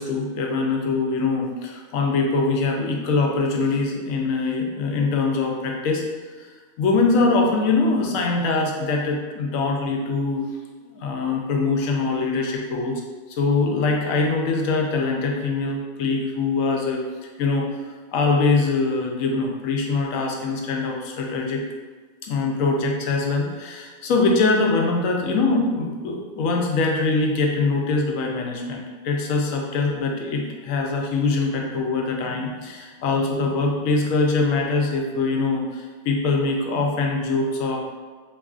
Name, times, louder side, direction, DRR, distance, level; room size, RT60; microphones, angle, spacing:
voice 1, 0.0-6.0 6.4-6.5 6.8-10.5 10.8-13.0 13.3-17.0 17.4-17.6 18.1-21.6 22.2-37.8, left 3 dB, 75° left, 1 dB, 1.0 m, -23 dB
3.6 x 3.0 x 2.4 m, 1.4 s
omnidirectional pair, 1.4 m